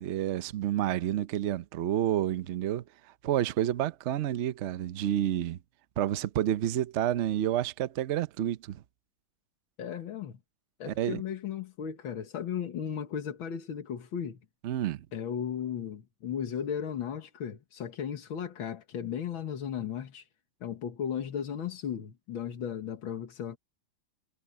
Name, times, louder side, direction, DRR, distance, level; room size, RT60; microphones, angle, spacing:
voice 1, 0.0-2.8 3.2-5.6 6.0-8.8 10.9-11.2 14.6-15.0, right 11 dB, 75° right, 0.6 m, -29 dB
voice 2, 9.8-10.4 10.8-14.4 15.1-20.3 20.6-23.6, left 8 dB, 85° left, 2.3 m, -35 dB
omnidirectional pair, 2.1 m